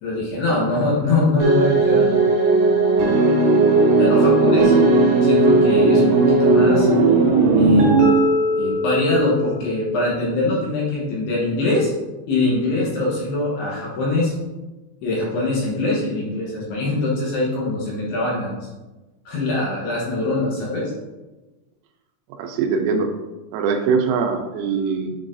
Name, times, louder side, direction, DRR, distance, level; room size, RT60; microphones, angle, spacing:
voice 1, 0.0-2.3 4.0-4.7 5.2-6.9 7.6-7.9 8.6-11.9 12.3-14.3 15.0-18.6 19.3-20.9, left 2 dB, 70° left, -5 dB, 2.8 m, -22 dB
sound 1, 1.4-9.8, right 3 dB, 70° right, 3.2 m, -16 dB
voice 2, 22.4-23.1 23.5-25.2, right 5 dB, 85° right, 4 dB, 3.2 m, -22 dB
10.0 x 3.9 x 2.6 m, 1.1 s
omnidirectional pair, 5.7 m